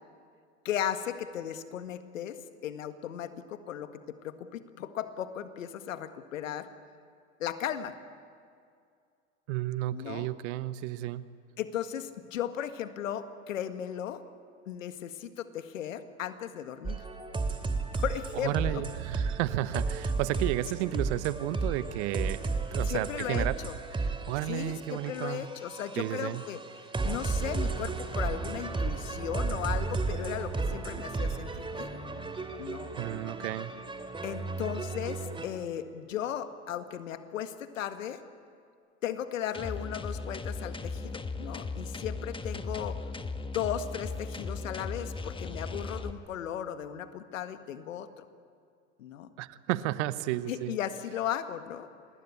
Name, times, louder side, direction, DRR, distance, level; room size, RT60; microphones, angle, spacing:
voice 1, 0.7-2.4 2.6-6.7 7.4-8.0 9.9-10.3 11.6-14.2 14.7-17.1 17.9-18.8 22.9-23.7 24.5-26.6 27.0-32.0 32.6-32.9 34.2-38.2 39.0-43.0 43.4-48.3 49.0-49.3 50.5-51.9, left 10 dB, 80° left, 10 dB, 1.8 m, -36 dB
voice 2, 9.5-11.2 18.4-22.4 22.7-23.6 23.9-25.5 26.0-26.4 33.0-33.7 49.4-50.8, right 15 dB, 60° right, 15 dB, 1.2 m, -32 dB
sound 1, 16.8-35.5, right 3 dB, 15° right, 2.7 m, -34 dB
sound 2, 39.5-46.1, left 3 dB, 15° left, 1.4 m, -37 dB
27.5 x 20.5 x 8.5 m, 2.3 s
hypercardioid pair, 85°, 39 cm